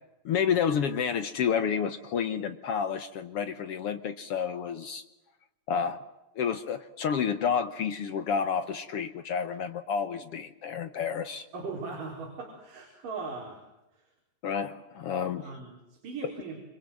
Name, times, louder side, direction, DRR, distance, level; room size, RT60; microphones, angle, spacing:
voice 1, 0.2-5.0 5.7-6.0 6.4-11.5 14.4-15.5, left 7 dB, 70° left, 11 dB, 1.4 m, -30 dB
voice 2, 11.5-13.6 13.9-14.1 15.4-16.6, right 4 dB, 65° right, 0 dB, 6.0 m, -39 dB
29.0 x 25.5 x 7.7 m, 0.94 s
omnidirectional pair, 4.1 m